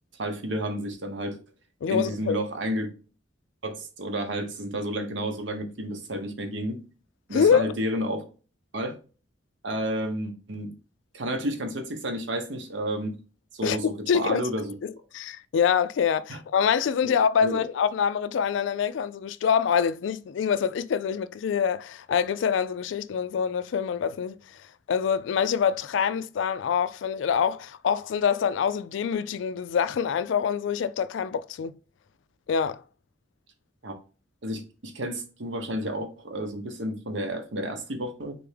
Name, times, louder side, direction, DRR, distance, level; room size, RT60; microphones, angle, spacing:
voice 1, 0.2-1.4 1.9-2.9 3.6-6.8 7.3-8.3 8.7-9.0 9.6-10.7 11.1-13.2 13.5-14.7 16.3-16.4 17.4-17.6 33.8-33.9 34.4-38.4, right 1 dB, 70° right, 1.0 m, -31 dB
voice 2, 1.8-2.4 7.3-7.7 13.6-13.8 14.1-14.5 14.8-24.4 24.9-31.8 32.5-32.8, left 7 dB, 70° left, 0.3 m, -25 dB
4.2 x 3.4 x 3.4 m
head